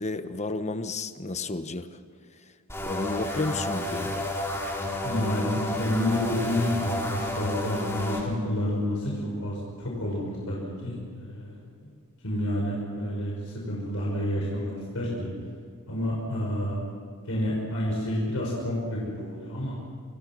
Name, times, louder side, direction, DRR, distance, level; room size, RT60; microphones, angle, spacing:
voice 1, 0.0-1.9 2.8-4.3, left 3 dB, 30° left, 10 dB, 1.2 m, -32 dB
sound 1, 2.7-8.2, left 1 dB, 10° left, 5.0 m, -31 dB
voice 2, 5.0-11.6 12.2-15.3 15.9-16.8 17.2-19.8, left 1 dB, 70° left, -3 dB, 6.4 m, -29 dB
29.0 x 26.5 x 6.3 m, 2.2 s
head